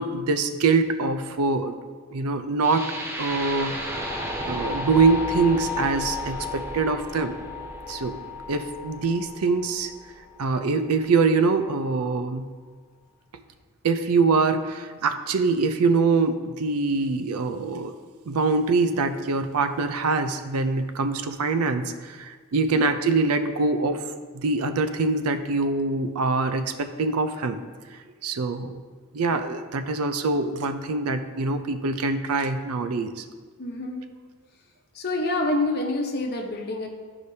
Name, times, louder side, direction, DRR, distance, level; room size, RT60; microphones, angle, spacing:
voice 1, 0.0-1.8 2.1-2.9 3.2-3.8 4.5-7.4 7.9-8.2 8.5-9.9 10.4-12.5 13.8-17.9 18.3-24.1 24.3-27.6 27.9-28.8 29.1-33.2, right 3 dB, 75° right, 9 dB, 0.5 m, -24 dB
sound 1, 2.6-10.6, left 2 dB, 10° right, 0.7 m, -33 dB
voice 2, 33.6-34.0 34.9-36.9, left 2 dB, 45° left, 1 dB, 0.9 m, -27 dB
11.5 x 5.0 x 2.7 m, 1.5 s
head